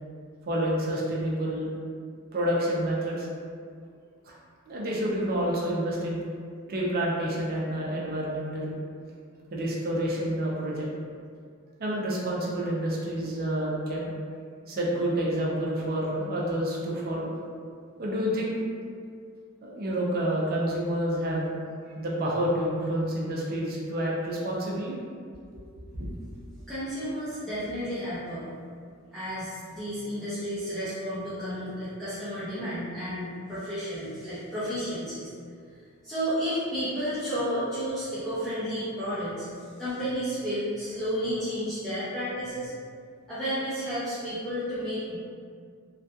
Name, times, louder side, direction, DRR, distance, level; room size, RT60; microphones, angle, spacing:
voice 1, 0.5-1.7 2.3-3.3 4.3-4.4 4.7-6.2 6.7-8.7 9.5-10.9 11.8-14.1 14.7-17.3 18.0-18.6 19.6-21.6 21.9-25.0 26.0-26.1, right 1 dB, 45° right, -4 dB, 0.5 m, -28 dB
voice 2, 26.7-28.5 29.1-35.3 36.0-39.5 39.8-42.7 43.3-45.2, equal, ahead, -15 dB, 0.5 m, -32 dB
2.6 x 2.3 x 2.2 m, 2.1 s
head